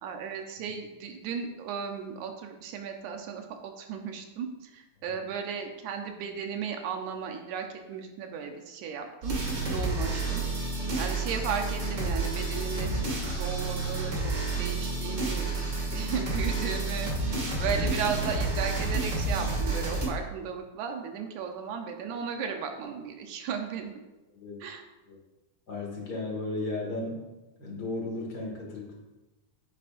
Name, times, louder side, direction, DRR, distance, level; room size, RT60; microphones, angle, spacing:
voice 1, 0.0-9.3 9.7-10.4 11.0-15.5 15.9-23.9 24.6-24.8, right 6 dB, 75° right, 4 dB, 2.1 m, -35 dB
sound 1, 9.2-20.1, right 2 dB, 40° right, 2.2 m, -30 dB
voice 2, 15.8-16.1 17.8-17.9 24.3-24.6 25.1-25.2 25.7-27.2 27.6-28.9, left 2 dB, 35° left, -2 dB, 2.0 m, -35 dB
9.2 x 9.2 x 2.6 m, 1.1 s
omnidirectional pair, 3.8 m